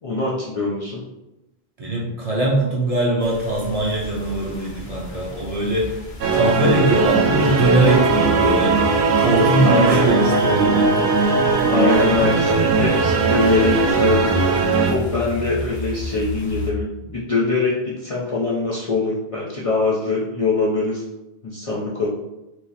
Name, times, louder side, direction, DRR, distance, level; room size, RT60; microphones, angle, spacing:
voice 1, 0.0-1.0 9.7-10.0 11.7-21.0 21.4-22.1, left 3 dB, 45° left, -6 dB, 0.5 m, -23 dB
voice 2, 1.8-5.9 6.3-8.8 9.2-10.9, right 1 dB, 40° right, -3 dB, 0.7 m, -21 dB
sound 1, 3.2-16.7, equal, 85° left, 1.0 m, -32 dB
sound 2, 6.2-14.9, right 4 dB, 85° right, 0.8 m, -18 dB
4.5 x 2.0 x 2.7 m, 0.96 s
omnidirectional pair, 1.1 m